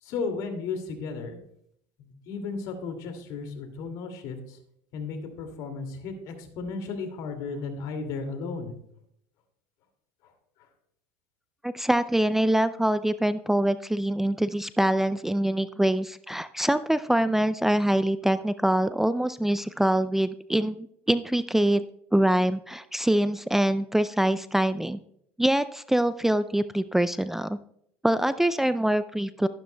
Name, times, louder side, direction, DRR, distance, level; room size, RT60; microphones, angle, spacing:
voice 1, 0.0-1.4 2.0-4.6 4.9-8.7, left 4 dB, 65° left, 6 dB, 2.4 m, -34 dB
voice 2, 11.6-21.8 22.1-25.0 25.4-27.6 28.0-29.5, right 1 dB, 5° right, 13 dB, 0.4 m, -24 dB
13.0 x 12.0 x 2.2 m, 0.71 s
supercardioid pair, 100°, 7 cm